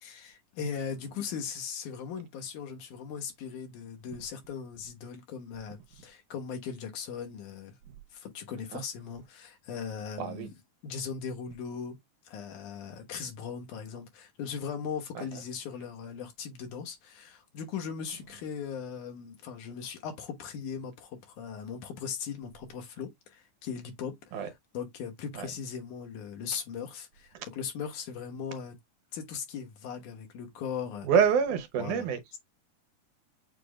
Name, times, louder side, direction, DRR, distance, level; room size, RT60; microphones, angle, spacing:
voice 1, 0.0-7.7 8.1-10.5 10.8-12.0 12.3-28.8 29.1-31.1 31.8-32.4, left 7 dB, 80° left, 2.6 m, -39 dB
voice 2, 10.2-10.5 15.2-15.3 24.3-24.5 25.4-25.5 31.0-32.2, right 7 dB, 80° right, 2.4 m, -26 dB
6.7 x 2.5 x 3.1 m
omnidirectional pair, 3.5 m